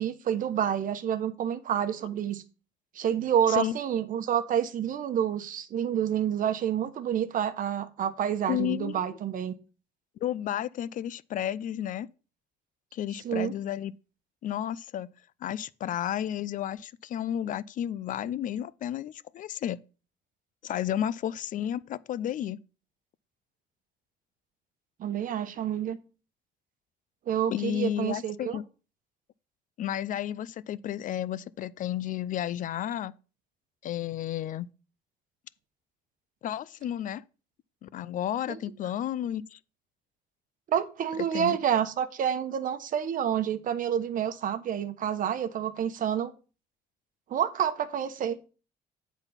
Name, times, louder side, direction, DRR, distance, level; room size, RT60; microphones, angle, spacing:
voice 1, 0.0-2.4 2.9-9.5 13.2-13.5 25.0-26.0 27.3-28.6 38.5-38.6 40.7-46.3 47.3-48.4, right 9 dB, 55° right, 1.0 m, -28 dB
voice 2, 8.5-9.2 10.2-12.1 12.9-13.9 14.4-15.1 15.4-19.8 20.6-22.6 27.5-28.6 29.8-33.2 33.8-34.7 36.4-37.2 37.8-39.6 41.3-41.6, left 11 dB, 50° left, 0.4 m, -32 dB
9.8 x 4.0 x 5.6 m
cardioid pair, 110°, 17 cm